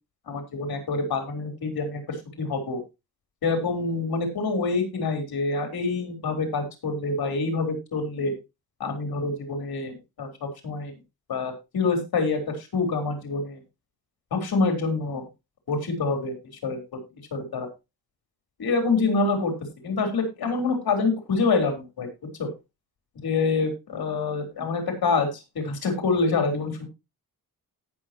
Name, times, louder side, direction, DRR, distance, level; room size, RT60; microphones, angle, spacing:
voice 1, 0.3-2.8 3.4-8.3 8.8-10.9 11.3-13.6 14.3-15.2 15.7-16.3 16.6-16.8 17.3-17.7 18.6-19.5 19.8-22.1 22.4-22.5 23.2-26.9, left 4 dB, 70° left, 5 dB, 3.9 m, -26 dB
18.0 x 6.4 x 2.9 m, 0.25 s
cardioid pair, 90°, 38 cm